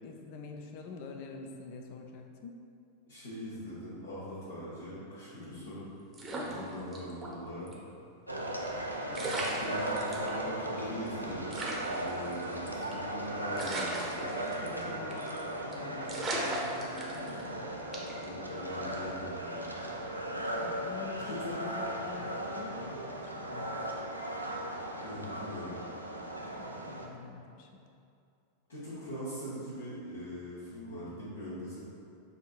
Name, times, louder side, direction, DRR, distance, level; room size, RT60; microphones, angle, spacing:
voice 1, 0.0-2.6 5.4-5.7 6.3-6.6 9.0-9.8 14.6-17.7 20.6-23.7 26.5-27.8, left 4 dB, 45° left, 3 dB, 0.4 m, -46 dB
voice 2, 3.1-5.9 6.3-7.7 9.2-15.1 18.2-20.0 21.3-21.6 25.0-25.8 28.7-31.8, equal, 70° left, -12 dB, 1.0 m, -42 dB
sound 1, 6.1-7.3 7.7-7.8 8.8-8.9 9.1-10.3 10.8-10.9 11.1-11.2 11.5-13.1 13.6-14.8 15.1-15.4 15.7-15.8 16.1-17.5 17.9-18.2, right 2 dB, 20° right, 0.7 m, -37 dB
sound 2, 8.3-27.1, right 1 dB, 85° right, 0.4 m, -37 dB
6.5 x 2.6 x 2.4 m, 2.5 s
figure-of-eight pair, 90°, 0 cm